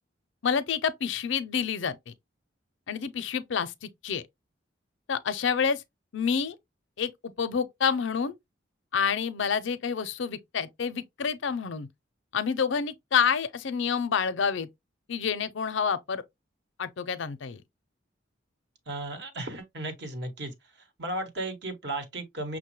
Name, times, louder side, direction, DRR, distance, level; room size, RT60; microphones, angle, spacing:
voice 1, 0.4-2.1 2.9-4.2 5.1-5.8 6.1-6.6 7.0-8.3 8.9-11.9 12.3-14.7 15.1-16.2 16.8-17.6, left 6 dB, 75° left, 0.5 m, -28 dB
voice 2, 18.9-20.5 21.0-22.6, right 1 dB, 60° right, 1.1 m, -35 dB
6.1 x 2.2 x 3.0 m
head